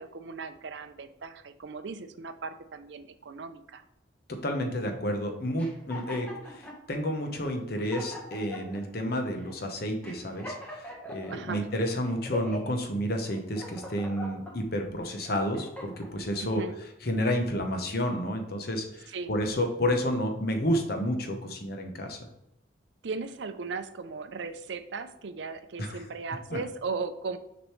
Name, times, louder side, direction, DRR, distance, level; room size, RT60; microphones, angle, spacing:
voice 1, 0.0-3.8 11.2-11.7 16.4-16.8 19.1-19.3 23.0-27.4, right 4 dB, 70° right, 10 dB, 0.5 m, -37 dB
voice 2, 4.4-16.6 17.0-22.2 25.8-26.0 26.5-26.6, equal, 55° left, 4 dB, 0.9 m, -30 dB
sound 1, 5.6-6.8 7.4-7.5 7.8-8.8 9.4-9.6 10.0-11.6 12.0-12.8 13.3-14.5 15.1-16.1, equal, 10° left, 1.2 m, -41 dB
6.5 x 5.1 x 3.1 m, 0.83 s
head